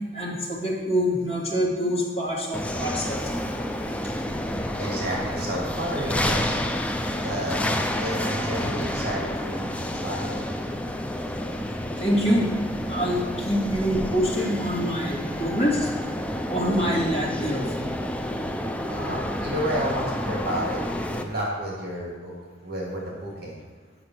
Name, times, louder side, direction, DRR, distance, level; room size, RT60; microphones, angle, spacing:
voice 1, 0.1-3.3 12.0-12.5 12.9-15.9 16.5-17.7, equal, 35° left, -5 dB, 2.5 m, -25 dB
sound 1, 2.5-21.2, left 1 dB, 5° left, 0.5 m, -29 dB
voice 2, 4.8-6.6 7.2-7.7 8.0-10.4 18.9-20.8 21.1-22.3 22.6-23.6, equal, 55° right, -3 dB, 2.2 m, -31 dB
8.6 x 5.9 x 6.0 m, 1.3 s
head